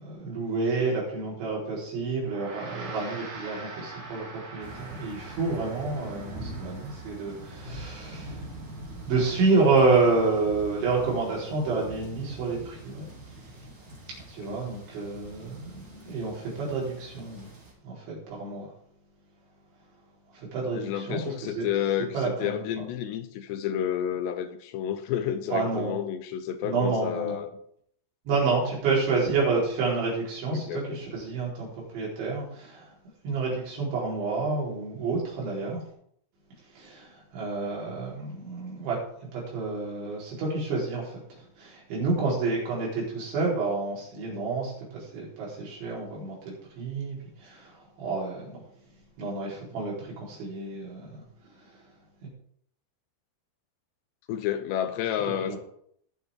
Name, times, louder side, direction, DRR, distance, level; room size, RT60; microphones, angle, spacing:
voice 1, 0.0-8.4 9.1-13.1 14.3-17.5 17.8-18.7 20.3-21.7 22.1-22.6 25.5-26.0 26.6-27.4 28.3-32.9 33.2-35.8 36.8-39.0 39.3-48.7 49.2-51.2 52.2-52.3 55.4-55.6, right 3 dB, 75° right, -5 dB, 6.7 m, -29 dB
Gong, 2.2-11.8, right 3 dB, 60° right, 3.6 m, -45 dB
sound 1, 4.6-17.7, right 1 dB, 30° right, 3.0 m, -43 dB
voice 2, 20.7-27.6 28.5-28.6 30.5-31.0 42.2-42.4 54.3-55.6, left 10 dB, 80° left, 10 dB, 2.8 m, -30 dB
19.5 x 7.0 x 3.7 m, 0.66 s
omnidirectional pair, 5.3 m